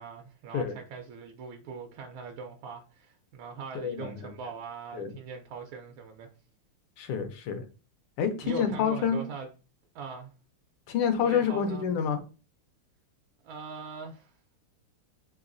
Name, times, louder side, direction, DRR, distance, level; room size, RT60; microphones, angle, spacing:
voice 1, 0.0-6.3 8.4-9.5 9.9-10.3 11.2-11.8 13.4-14.3, right 5 dB, 75° right, 1.3 m, -41 dB
voice 2, 3.7-4.3 4.9-5.1 7.0-7.7 8.2-9.2 10.9-12.2, left 7 dB, 80° left, 1.5 m, -28 dB
4.0 x 2.9 x 2.5 m
omnidirectional pair, 2.4 m